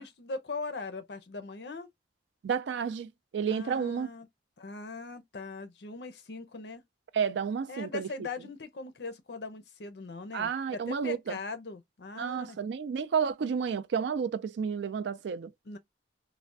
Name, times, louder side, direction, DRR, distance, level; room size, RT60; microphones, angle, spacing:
voice 1, 0.0-1.9 3.5-4.3 4.6-6.8 7.7-12.6 15.6-15.8, left 3 dB, 65° left, 0.6 m, -40 dB
voice 2, 2.4-4.1 7.1-8.1 10.3-11.4 12.2-15.5, right 6 dB, 70° right, 0.3 m, -31 dB
3.3 x 2.1 x 2.5 m
head